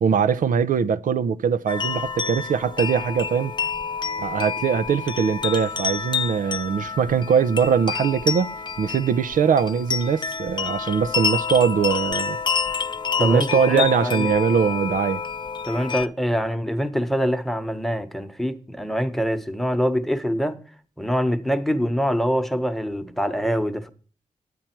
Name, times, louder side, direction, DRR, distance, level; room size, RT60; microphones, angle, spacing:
voice 1, 0.0-3.5 4.2-12.4 13.2-15.2, right 6 dB, 75° right, 0.5 m, -22 dB
sound 1, 1.7-16.1, left 6 dB, 35° left, 0.5 m, -28 dB
voice 2, 13.2-14.3 15.6-20.6 21.0-23.9, equal, ahead, 1.0 m, -24 dB
9.3 x 8.7 x 4.5 m
cardioid pair, 60°, 14 cm